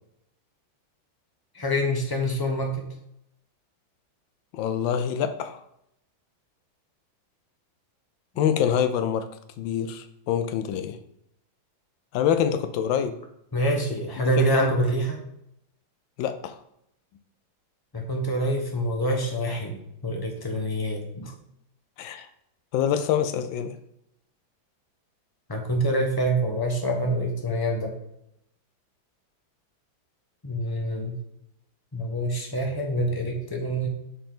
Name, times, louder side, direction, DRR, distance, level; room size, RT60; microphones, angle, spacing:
voice 1, 1.5-2.8 13.5-15.2 17.9-21.3 25.5-27.9 30.4-31.2 31.9-33.9, right 1 dB, 20° left, 1 dB, 0.6 m, -26 dB
voice 2, 4.5-5.6 8.4-9.3 9.6-11.0 12.1-13.2 14.2-14.7 16.2-16.5 22.0-22.3 22.7-23.7, left 9 dB, 75° left, 9 dB, 1.3 m, -25 dB
6.7 x 5.1 x 3.8 m, 0.78 s
omnidirectional pair, 2.2 m